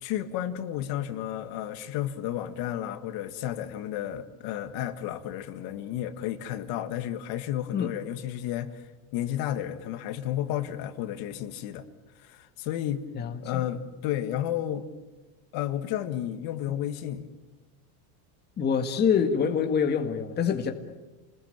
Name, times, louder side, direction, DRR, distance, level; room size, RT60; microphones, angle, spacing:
voice 1, 0.0-8.8 9.1-11.8 12.2-13.0 13.4-14.9 15.5-17.3, left 11 dB, 55° left, 9 dB, 2.0 m, -32 dB
voice 2, 13.2-13.6 18.6-20.7, left 7 dB, 20° left, 5 dB, 1.7 m, -25 dB
29.5 x 21.0 x 9.1 m, 1.2 s
cardioid pair, 160°, 44 cm